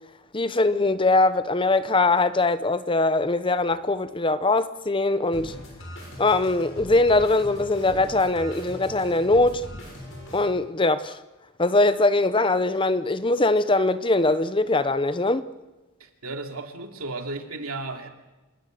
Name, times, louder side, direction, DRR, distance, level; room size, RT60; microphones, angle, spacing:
voice 1, 0.3-5.5 6.2-9.6 10.3-11.2 11.6-15.4, left 2 dB, 25° left, 0.7 m, -22 dB
sound 1, 5.3-10.4, left 1 dB, 60° left, 7.0 m, -40 dB
voice 2, 16.0-18.1, right 2 dB, 80° right, 2.9 m, -34 dB
27.0 x 20.0 x 7.8 m
head